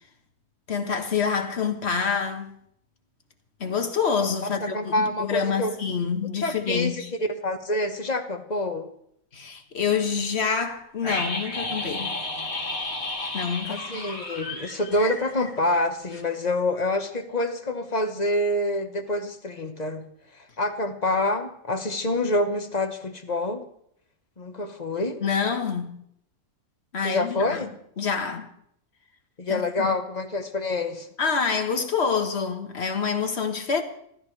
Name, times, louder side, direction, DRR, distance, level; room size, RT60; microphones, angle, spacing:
voice 1, 0.7-2.5 3.6-7.1 9.3-12.1 13.3-13.8 25.2-26.0 26.9-27.7 28.0-28.5 29.5-30.0 31.2-33.8, left 6 dB, 45° left, 1.7 m, -27 dB
voice 2, 4.4-5.7 6.4-8.9 13.7-20.0 20.3-23.7 24.4-25.2 27.0-27.7 29.4-31.1, left 1 dB, 30° left, 1.4 m, -27 dB
sound 1, 11.0-15.9 16.1-16.2, left 2 dB, 65° left, 3.1 m, -32 dB
28.0 x 13.0 x 3.3 m
omnidirectional pair, 1.6 m